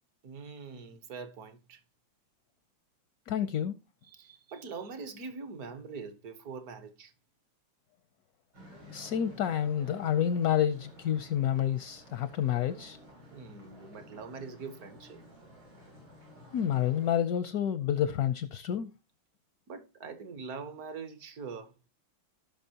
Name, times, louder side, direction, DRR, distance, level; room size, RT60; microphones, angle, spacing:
voice 1, 0.2-1.8 4.0-7.1 13.3-15.2 19.7-21.7, right 5 dB, 55° right, 1.3 m, -43 dB
voice 2, 3.3-3.8 8.9-13.0 16.5-18.9, left 9 dB, 70° left, 0.9 m, -29 dB
sound 1, 8.5-17.2, equal, 85° right, 8.2 m, -53 dB
17.0 x 5.8 x 2.8 m
omnidirectional pair, 2.2 m